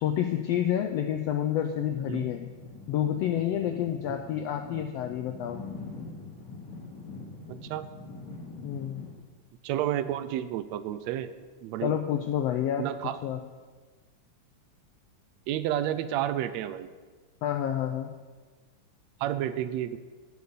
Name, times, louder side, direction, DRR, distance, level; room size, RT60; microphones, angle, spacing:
voice 1, 0.0-2.5 2.9-5.6 8.6-9.0 11.8-12.8 13.2-13.4 17.4-18.1, left 10 dB, 85° left, 5 dB, 1.4 m, -29 dB
sound 1, 1.7-9.1, left 3 dB, 60° left, 3.6 m, -44 dB
voice 2, 7.5-7.9 9.6-11.3 11.6-12.0 12.8-13.2 15.5-16.9 19.2-20.0, right 12 dB, 80° right, 12 dB, 1.6 m, -31 dB
9.2 x 6.7 x 8.3 m, 1.4 s
omnidirectional pair, 3.5 m